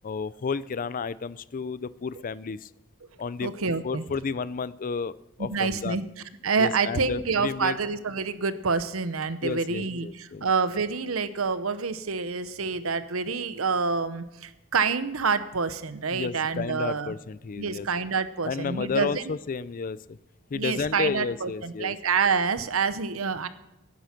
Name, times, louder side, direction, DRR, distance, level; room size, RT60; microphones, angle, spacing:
voice 1, 0.0-2.7 3.2-3.5 3.8-5.1 5.4-6.0 6.6-7.8 9.4-10.5 16.1-17.9 18.4-20.2 20.5-21.9, left 5 dB, 40° left, 18 dB, 0.4 m, -32 dB
voice 2, 3.4-4.1 5.4-6.0 6.4-17.1 17.6-19.2 20.5-23.5, right 5 dB, 85° right, 13 dB, 0.9 m, -27 dB
17.5 x 10.0 x 5.9 m, 0.94 s
head